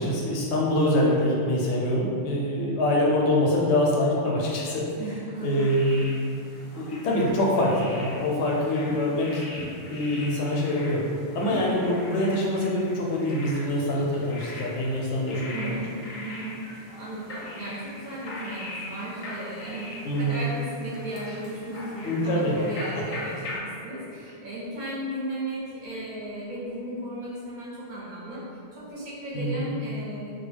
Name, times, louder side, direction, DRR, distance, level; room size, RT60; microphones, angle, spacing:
voice 1, 0.0-4.8 5.4-6.1 6.8-9.4 9.9-11.0 11.3-15.8 20.0-20.4 22.0-22.5 23.0-23.2 29.3-29.7, left 1 dB, 80° left, -3 dB, 0.9 m, -25 dB
voice 2, 5.0-5.5 15.5-28.5 28.7-30.3, right 1 dB, 50° right, -8 dB, 0.6 m, -35 dB
sound 1, 5.4-23.6, left 1 dB, 55° left, 0.7 m, -41 dB
2.2 x 2.1 x 3.2 m, 2.3 s
omnidirectional pair, 1.1 m